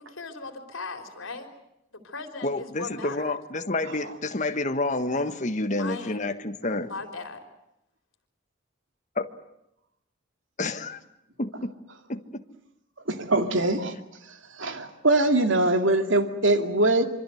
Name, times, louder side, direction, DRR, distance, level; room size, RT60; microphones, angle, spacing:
voice 1, 0.0-1.5 1.9-3.4 5.7-6.2 6.8-7.4, left 3 dB, 75° left, 6 dB, 4.0 m, -38 dB
voice 2, 2.4-6.9 9.2-9.3 10.6-11.0 11.4-11.7 12.1-12.4, left 2 dB, 35° left, 9 dB, 1.5 m, -29 dB
voice 3, 13.1-13.9 14.3-17.0, right 2 dB, 70° right, 7 dB, 2.5 m, -23 dB
26.5 x 25.0 x 7.9 m, 0.82 s
head